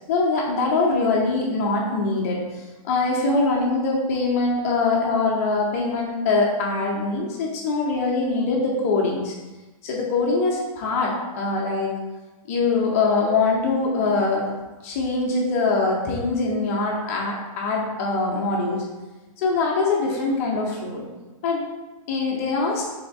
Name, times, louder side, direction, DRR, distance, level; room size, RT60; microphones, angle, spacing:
voice 1, 0.1-9.3 9.8-11.9 12.5-14.5 14.8-18.8 19.4-21.0 21.4-21.7 22.1-22.9, left 3 dB, 25° left, -1 dB, 0.5 m, -23 dB
3.4 x 3.3 x 3.8 m, 1.2 s
supercardioid pair, 175°, 18 cm